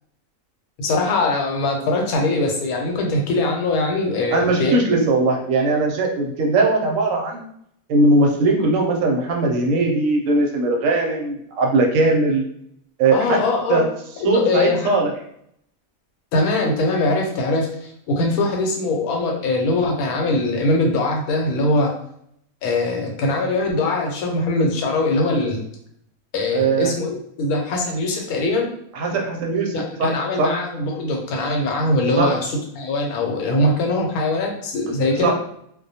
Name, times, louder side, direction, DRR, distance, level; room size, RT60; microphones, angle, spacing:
voice 1, 0.8-5.0 13.1-13.8 14.2-14.9 16.3-21.9 22.6-25.6 26.3-28.7 29.7-35.3, left 2 dB, 85° left, 1 dB, 1.1 m, -22 dB
voice 2, 4.3-7.4 7.9-12.5 13.0-13.4 13.7-13.8 14.2-15.1 26.5-26.9 28.9-29.7 30.0-30.1 30.4-30.5 32.2-32.3 34.9-35.0 35.2-35.3, right 3 dB, 70° right, 1 dB, 0.9 m, -19 dB
2.3 x 2.1 x 2.7 m, 0.69 s
omnidirectional pair, 1.5 m